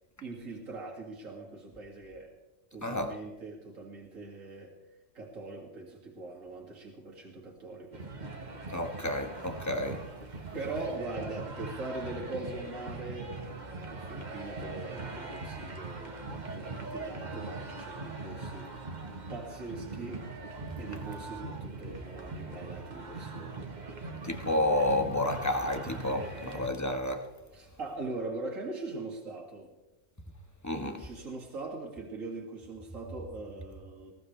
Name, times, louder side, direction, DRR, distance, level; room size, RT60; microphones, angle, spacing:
voice 1, 0.2-2.3 2.7-4.7 5.1-8.0 10.5-18.7 19.3-20.2 20.8-23.7 27.5-29.7 30.8-34.1, right 2 dB, 70° right, 2.6 m, -41 dB
voice 2, 2.8-3.1 8.7-10.0 24.2-27.3 30.6-31.0, left 1 dB, 15° left, 1.3 m, -30 dB
sound 1, 7.9-26.7, right 3 dB, 35° right, 1.4 m, -41 dB
20.5 x 18.0 x 3.3 m
omnidirectional pair, 1.4 m